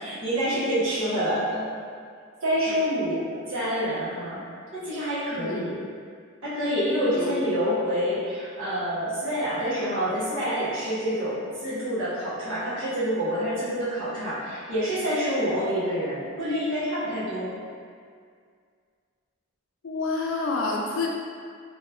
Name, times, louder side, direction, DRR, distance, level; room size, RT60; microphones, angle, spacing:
voice 1, 0.0-1.6 2.4-4.4 4.7-5.8 6.4-17.6, equal, 85° right, -12 dB, 1.4 m, -27 dB
voice 2, 5.3-5.7 7.1-7.3 19.8-21.1, left 3 dB, 70° left, -1 dB, 0.5 m, -28 dB
3.0 x 2.8 x 2.5 m, 2.1 s
head